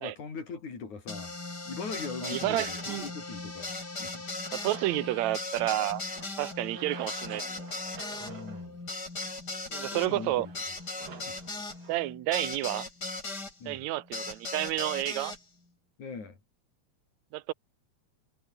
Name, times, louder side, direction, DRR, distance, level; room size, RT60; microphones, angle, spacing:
voice 1, 0.0-1.3 1.7-4.2 8.2-8.8 9.8-10.3 11.3-11.4 13.6-13.8 16.0-16.4, left 5 dB, 85° left, 6.4 m, -41 dB
sound 1, 1.1-13.5 14.1-15.4, left 3 dB, 35° left, 5.7 m, -38 dB
voice 2, 2.2-3.1 4.5-6.0 6.4-7.7 9.7-10.5 11.9-12.9 13.7-15.3 17.3-17.5, right 16 dB, 75° right, 2.1 m, -30 dB
sound 2, 4.6-12.0, right 6 dB, 60° right, 4.0 m, -50 dB
omnidirectional pair, 3.3 m